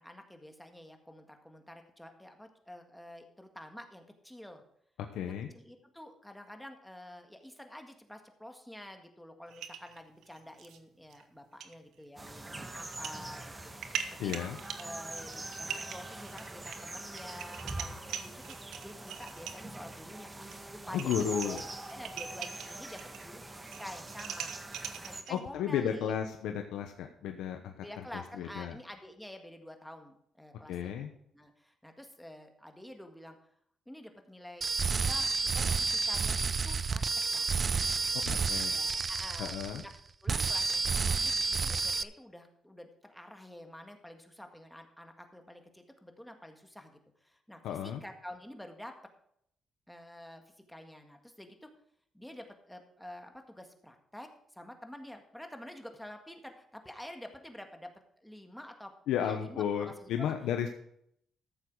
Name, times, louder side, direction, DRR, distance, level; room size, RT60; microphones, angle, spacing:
voice 1, 0.0-4.6 5.3-14.3 14.8-24.5 25.0-26.2 27.8-31.0 31.3-33.4 33.9-37.0 37.3-37.5 38.7-39.5 39.8-39.9 40.2-48.9 49.9-51.7 52.1-57.9 58.2-58.9 59.2-60.4, left 1 dB, 5° left, 5 dB, 1.7 m, -49 dB
voice 2, 5.1-5.5 14.2-14.6 20.9-21.6 25.3-27.8 28.4-28.8 30.7-31.1 38.3-38.7 39.4-39.8 47.6-48.0 59.1-60.7, left 9 dB, 85° left, 5 dB, 0.9 m, -33 dB
sound 1, 9.5-10.8 11.1-11.2 11.6-11.8 12.8-13.2 13.6-19.8 20.5-20.6 20.9-23.3 23.5-25.4, right 8 dB, 80° right, 1.0 m, -42 dB
sound 2, 12.2-25.2, right 2 dB, 20° right, 1.3 m, -44 dB
sound 3, 34.6-40.0 40.3-42.0, right 4 dB, 40° right, 0.5 m, -30 dB
14.0 x 7.2 x 4.7 m, 0.70 s
cardioid pair, 90°, 0 cm